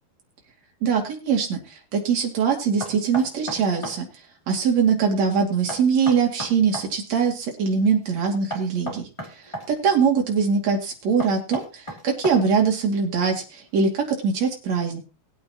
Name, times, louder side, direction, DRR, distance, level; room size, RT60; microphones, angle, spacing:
voice 1, 0.8-4.1 4.5-9.1 9.7-15.0, right 6 dB, 40° right, 1 dB, 3.1 m, -22 dB
Knock, 2.8-4.0 5.7-6.9 8.5-9.7 11.2-12.6, right 1 dB, 30° left, 0.5 m, -34 dB
21.5 x 8.5 x 3.0 m, 0.30 s
omnidirectional pair, 5.5 m